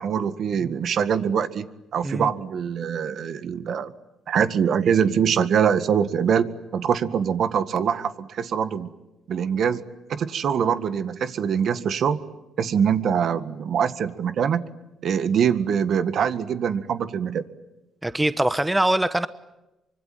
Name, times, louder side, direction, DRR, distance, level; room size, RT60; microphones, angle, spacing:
voice 1, 0.0-1.7 1.9-3.9 4.3-8.9 9.3-9.8 10.1-12.2 12.6-14.6 15.0-17.4, right 7 dB, 65° right, 12 dB, 1.8 m, -23 dB
voice 2, 18.0-19.3, right 1 dB, 10° right, 13 dB, 1.2 m, -23 dB
25.0 x 25.0 x 9.3 m, 0.97 s
cardioid pair, 90°, 0 cm